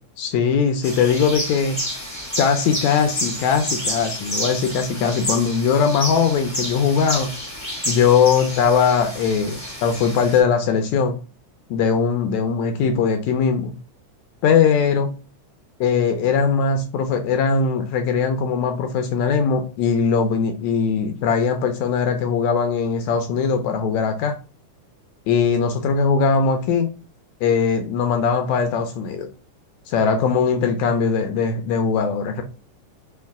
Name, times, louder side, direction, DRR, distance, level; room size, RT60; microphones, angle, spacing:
voice 1, 0.2-1.8 2.4-7.3 7.9-11.2 11.7-13.7 14.4-15.1 15.8-24.4 25.3-26.9 27.4-29.3 29.9-32.4, left 6 dB, 80° left, 6 dB, 1.8 m, -20 dB
sound 1, 0.8-10.4, equal, 20° left, 0.4 m, -30 dB
5.5 x 2.6 x 3.6 m, 0.35 s
omnidirectional pair, 3.6 m